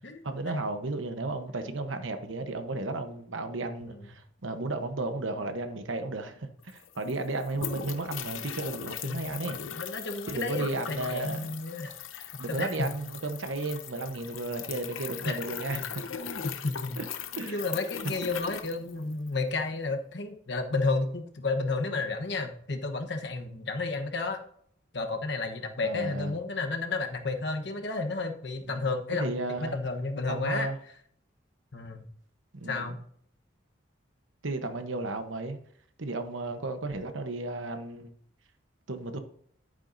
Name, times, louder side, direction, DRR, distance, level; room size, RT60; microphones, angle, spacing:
voice 1, 0.2-9.6 10.3-11.5 12.4-15.8 17.0-17.1 17.4-17.6 25.8-26.4 28.6-28.9 29.2-29.8 30.3-30.8 32.5-33.0 34.4-35.6 36.0-38.1 38.9-39.2, right 2 dB, 80° right, 1.1 m, -34 dB
sound 1, 6.4-6.5 6.6-19.4, left 8 dB, 90° left, 0.8 m, -40 dB
voice 2, 9.0-12.9 15.2-15.4 15.8-17.0 17.5-24.4 24.9-30.7 31.7-32.0 32.7-33.0, left 3 dB, 60° left, 1.1 m, -32 dB
11.0 x 9.1 x 2.7 m
head